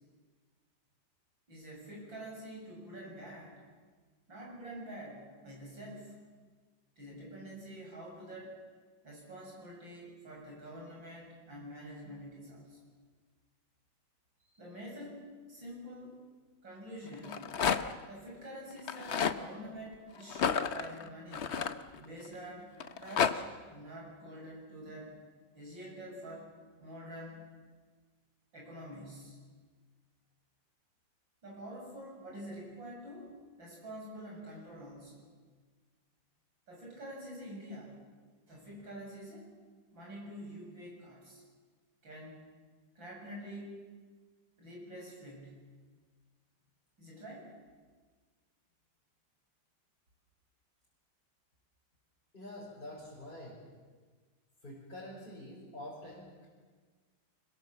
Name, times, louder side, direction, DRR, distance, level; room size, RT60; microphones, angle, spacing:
voice 1, 1.5-3.6 4.3-6.2 7.0-8.6 9.0-12.8 14.5-16.3 16.6-17.5 18.1-21.5 21.9-25.2 25.5-26.5 26.8-27.5 28.5-29.4 31.4-33.3 33.6-35.3 36.7-38.0 38.5-39.5 39.9-41.4 42.0-42.4 43.0-43.8 44.6-45.6 47.0-47.5, equal, 85° right, -3 dB, 8.9 m, -47 dB
Rattle, 17.1-18.0 18.8-19.4 20.3-22.3 22.8-23.3, left 7 dB, 45° left, 0.9 m, -31 dB
voice 2, 52.3-53.6 54.6-56.5, left 1 dB, 25° left, -7 dB, 5.9 m, -46 dB
26.0 x 22.5 x 7.6 m, 1.5 s
omnidirectional pair, 2.0 m